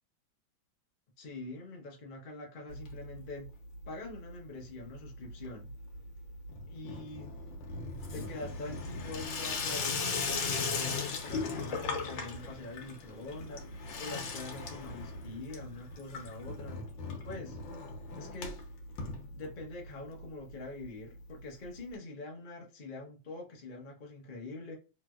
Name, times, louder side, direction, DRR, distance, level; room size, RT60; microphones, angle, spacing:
voice 1, 1.2-3.5 3.9-5.7 6.7-7.3 8.1-16.9 17.2-17.6 18.2-18.6 19.3-24.8, left 2 dB, 50° left, 0.5 m, -44 dB
Water tap faucet / Sink (filling or washing), 2.7-3.5 3.7-4.3 4.6-19.9 20.2-20.3 20.5-20.6 20.8-20.9 21.9-22.0, left 4 dB, 70° left, 1.5 m, -38 dB
3.3 x 3.0 x 2.3 m
omnidirectional pair, 2.3 m